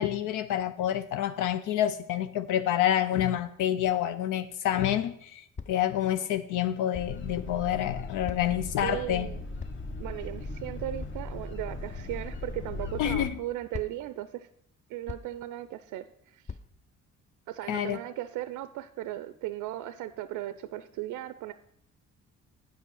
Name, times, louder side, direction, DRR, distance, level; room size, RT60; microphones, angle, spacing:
voice 1, 0.0-9.3 13.0-13.4 17.7-18.0, left 11 dB, 85° left, 0.5 m, -28 dB
sound 1, 5.6-5.9 6.9-7.2 8.3-8.7 9.6-10.0 11.0-11.2 12.4-12.6 13.7-14.2 15.1-15.4 16.5-16.7, left 5 dB, 25° left, 0.5 m, -41 dB
sound 2, 6.9-13.3, left 2 dB, 40° left, 1.1 m, -38 dB
voice 2, 8.8-9.4 10.0-14.5 14.9-16.6 17.5-21.5, right 14 dB, 90° right, 0.5 m, -37 dB
8.8 x 5.6 x 6.1 m
cardioid pair, 90°, 30 cm